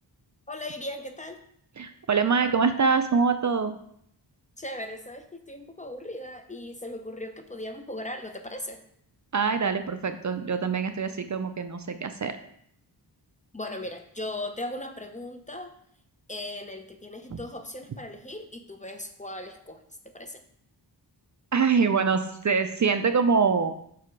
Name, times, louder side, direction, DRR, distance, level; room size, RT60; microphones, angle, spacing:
voice 1, 0.5-1.4 4.6-8.8 13.5-15.7 16.3-20.4, left 1 dB, 15° left, 6 dB, 0.6 m, -38 dB
voice 2, 1.8-3.8 9.3-12.4 17.3-17.4 21.5-23.7, right 5 dB, 45° right, 9 dB, 0.5 m, -24 dB
5.9 x 4.8 x 4.6 m, 0.69 s
wide cardioid pair, 95°, 43 cm